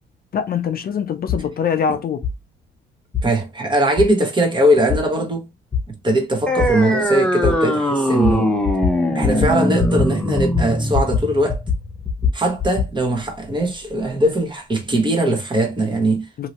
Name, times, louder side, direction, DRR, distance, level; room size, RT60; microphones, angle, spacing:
voice 1, 0.3-2.2 16.4-16.5, left 7 dB, 50° left, 0.5 m, -23 dB
sound 1, 1.3-1.4 2.2-2.3 3.1-3.3 4.0-4.1 4.9-5.0 5.7-5.8 6.6-6.7 7.4-7.5 8.2-8.4 8.6-9.0 9.2-9.5 9.8-10.1 10.4-11.2 11.5-12.9, left 6 dB, 20° left, 1.1 m, -21 dB
voice 2, 3.2-5.5 6.0-8.6 9.1-11.6 12.3-16.5, right 1 dB, 25° right, 1.1 m, -20 dB
sound 2, 6.5-13.5, equal, 5° left, 0.8 m, -22 dB
2.7 x 2.7 x 2.9 m
cardioid pair, 90°, 20 cm